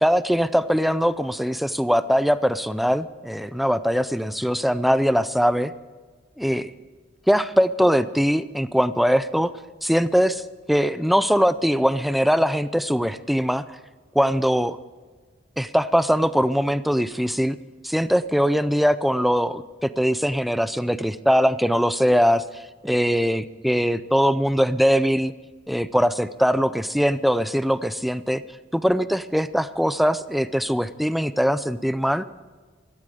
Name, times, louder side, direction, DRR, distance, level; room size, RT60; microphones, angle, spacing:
voice 1, 0.0-5.7 6.4-6.7 7.3-9.5 9.8-10.4 10.7-13.6 14.1-14.8 15.6-17.6 17.8-22.4 22.8-25.3 25.7-28.4 28.7-32.2, equal, ahead, 14 dB, 0.5 m, -21 dB
17.0 x 13.5 x 5.0 m, 1.4 s
head